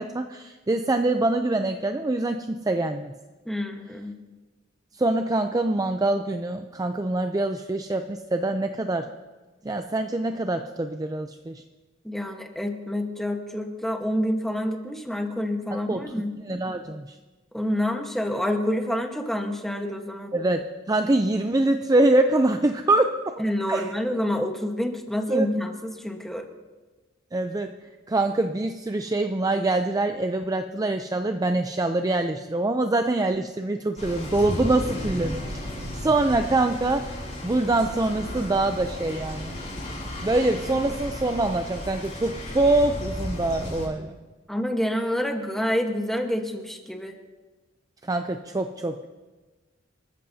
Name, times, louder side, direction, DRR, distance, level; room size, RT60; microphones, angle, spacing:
voice 1, 0.0-3.1 5.0-9.1 9.6-11.6 15.9-16.0 16.4-17.2 20.3-23.4 23.7-23.9 25.3-25.5 27.3-27.7 28.1-37.1 37.4-39.6 40.2-44.1 48.0-49.1, right 2 dB, 20° right, 6 dB, 0.5 m, -24 dB
voice 2, 3.5-4.2 12.0-16.3 17.5-20.3 23.4-26.5 44.5-47.1, equal, ahead, 3 dB, 1.3 m, -28 dB
sound 1, 34.0-43.9, left 1 dB, 40° left, 5.4 m, -34 dB
27.5 x 13.5 x 2.8 m, 1.3 s
head